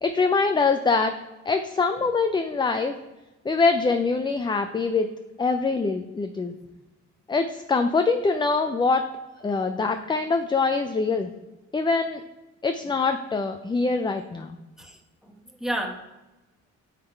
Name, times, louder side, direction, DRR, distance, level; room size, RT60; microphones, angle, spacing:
voice 1, 0.0-1.1 1.5-2.9 3.4-5.1 5.4-6.5 7.3-9.0 9.4-11.3 11.7-12.2 12.6-14.5, left 4 dB, 15° left, 7 dB, 0.4 m, -24 dB
voice 2, 14.8-15.3 15.6-15.9, right 1 dB, ahead, 1 dB, 1.3 m, -31 dB
9.1 x 3.7 x 4.5 m, 1.1 s
cardioid pair, 90°, 30 cm